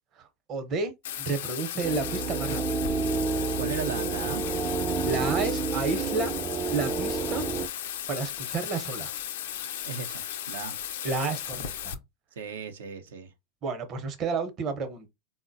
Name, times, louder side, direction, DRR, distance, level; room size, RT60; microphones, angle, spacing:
voice 1, 0.2-0.9 1.2-2.9 5.1-6.3 6.7-7.4 8.1-9.1 11.0-12.0 13.6-15.1, right 4 dB, 40° right, 0.7 m, -31 dB
Bathtub (filling or washing), 1.0-11.9, left 11 dB, 80° left, 0.4 m, -36 dB
sound 1, 1.8-7.7, right 4 dB, 25° right, 0.4 m, -29 dB
voice 2, 3.6-4.4 9.9-10.8 12.4-13.3, right 6 dB, 85° right, 0.5 m, -36 dB
3.8 x 2.1 x 2.5 m
hypercardioid pair, 115°, 0 cm